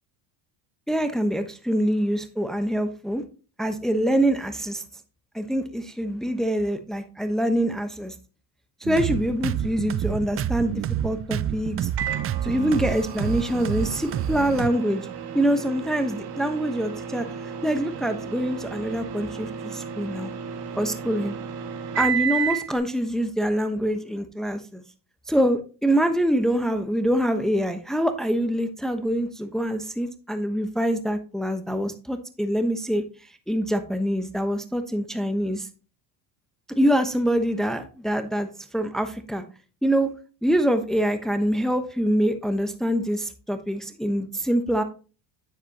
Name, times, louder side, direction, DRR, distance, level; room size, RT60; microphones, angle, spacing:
voice 1, 0.9-3.2 3.6-4.8 5.3-8.1 8.8-10.7 11.0-11.9 12.4-15.1 15.3-17.3 17.6-20.3 20.8-21.3 21.9-24.8 25.3-33.0 33.5-35.7 36.8-38.5 38.7-39.4 39.8-40.1 40.4-44.8, equal, ahead, 8 dB, 1.1 m, -25 dB
sound 1, 8.8-14.7, right 10 dB, 30° right, 0.4 m, -29 dB
Microwave oven, 12.0-22.7, right 7 dB, 55° right, 1.9 m, -33 dB
9.6 x 7.7 x 2.9 m, 0.35 s
supercardioid pair, 85°, 46 cm